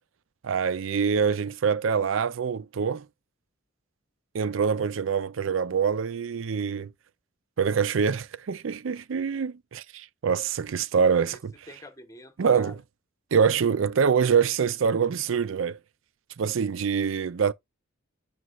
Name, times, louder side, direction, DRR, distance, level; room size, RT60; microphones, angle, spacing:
voice 1, 0.4-3.1 4.3-6.9 7.6-11.5 12.4-12.7 13.3-15.8 16.4-17.5, right 6 dB, 70° right, 0.5 m, -25 dB
voice 2, 11.7-12.8, left 1 dB, 15° left, 1.1 m, -46 dB
9.4 x 4.4 x 2.4 m
head